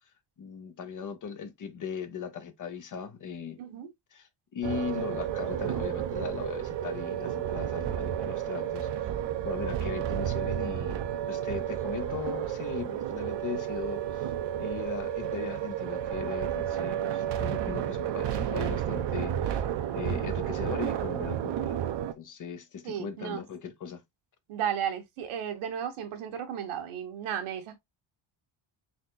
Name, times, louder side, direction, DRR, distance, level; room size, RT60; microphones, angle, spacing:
voice 1, 0.4-3.6 4.1-9.1 9.4-11.0 11.3-14.3 14.6-19.6 19.9-24.0, left 7 dB, 40° left, 0.8 m, -38 dB
voice 2, 3.6-3.9 22.8-23.4 24.5-27.8, right 9 dB, 80° right, 1.4 m, -34 dB
sound 1, 4.6-22.1, right 10 dB, 60° right, 0.8 m, -31 dB
4.4 x 4.3 x 2.2 m
cardioid pair, 155°, 49 cm